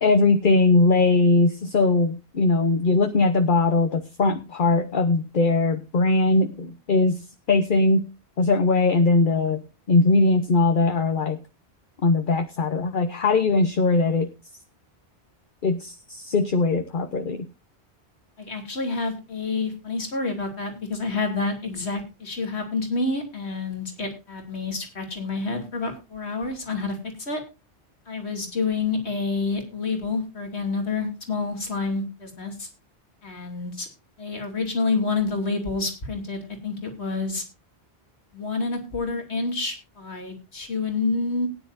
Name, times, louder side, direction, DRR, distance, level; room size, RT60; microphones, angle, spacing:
voice 1, 0.0-8.1 8.4-9.6 9.9-11.4 12.0-14.3 15.6-17.5, left 3 dB, 50° left, 7 dB, 1.1 m, -20 dB
voice 2, 18.4-27.4 28.1-32.7 33.2-33.9 34.2-37.4 38.3-41.5, left 3 dB, 75° left, 4 dB, 3.1 m, -28 dB
18.5 x 10.0 x 2.6 m, 0.29 s
omnidirectional pair, 1.1 m